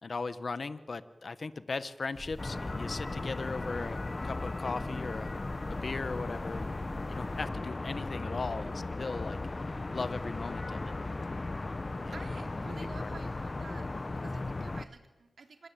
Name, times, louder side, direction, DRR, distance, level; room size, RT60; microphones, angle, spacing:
voice 1, 0.0-5.4 5.7-6.7 7.1-8.7 9.0-10.9 12.0-12.3 13.0-13.1, left 4 dB, 55° left, 13 dB, 1.3 m, -38 dB
sound 1, 2.1-7.5, equal, 5° left, 2.2 m, -47 dB
sound 2, 2.4-14.8, left 2 dB, 35° left, 1.2 m, -36 dB
voice 2, 12.1-15.7, right 4 dB, 65° right, 5 dB, 3.6 m, -50 dB
26.5 x 21.0 x 8.8 m, 1.1 s
cardioid pair, 65°, 0 cm